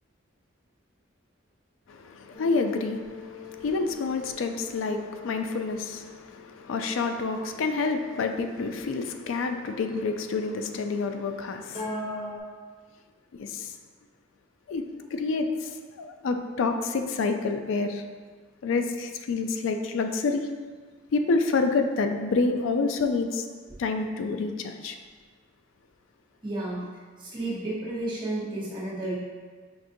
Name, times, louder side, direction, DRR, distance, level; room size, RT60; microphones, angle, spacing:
voice 1, 1.9-12.1 13.4-13.7 14.7-14.8 15.1-15.7 16.0-18.0 18.6-20.5 21.1-23.4 23.8-25.0, left 4 dB, 90° left, 6 dB, 0.4 m, -28 dB
sound 1, 2.3-8.6 11.7-12.4, left 2 dB, 30° left, 0.6 m, -41 dB
voice 2, 26.4-26.9 27.2-29.1, right 2 dB, 25° right, -7 dB, 1.2 m, -32 dB
5.9 x 2.5 x 2.6 m, 1.5 s
head